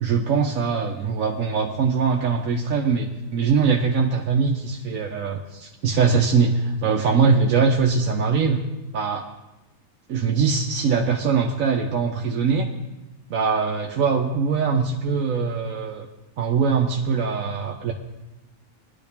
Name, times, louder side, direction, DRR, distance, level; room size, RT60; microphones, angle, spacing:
voice 1, 0.0-8.6 8.9-9.3 10.1-12.7 13.3-16.1 16.4-17.9, right 5 dB, 85° right, 0 dB, 1.3 m, -22 dB
20.5 x 11.0 x 3.6 m, 1.0 s
omnidirectional pair, 1.4 m